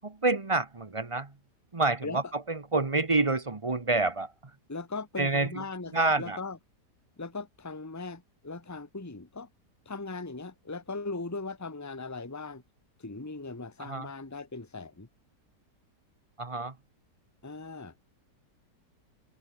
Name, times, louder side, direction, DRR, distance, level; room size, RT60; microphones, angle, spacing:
voice 1, 0.0-1.3 1.7-4.5 5.2-5.6 5.9-6.4 13.8-14.1 16.4-16.7, right 3 dB, 20° right, 1.0 m, -28 dB
voice 2, 4.7-6.6 7.2-9.5 9.8-12.6 13.0-15.1 17.4-17.9, left 3 dB, 10° left, 1.5 m, -39 dB
omnidirectional pair, 1.8 m